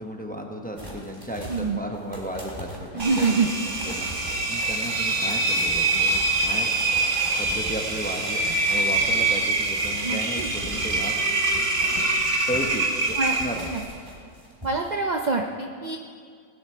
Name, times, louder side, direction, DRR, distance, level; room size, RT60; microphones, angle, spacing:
voice 1, 0.0-6.7 7.4-11.2 12.5-13.7, equal, 5° left, 2 dB, 1.0 m, -34 dB
sound 1, 0.8-12.2 12.5-14.9 15.2-15.3, equal, 15° right, 3.6 m, -40 dB
voice 2, 2.9-3.5 10.0-10.5 13.2-13.3 13.7-13.8 14.6-16.0, right 4 dB, 45° right, 2 dB, 0.7 m, -25 dB
Engine, 3.0-13.8, right 2 dB, 60° right, 1.6 m, -25 dB
18.0 x 9.7 x 4.5 m, 2.1 s
omnidirectional pair, 1.4 m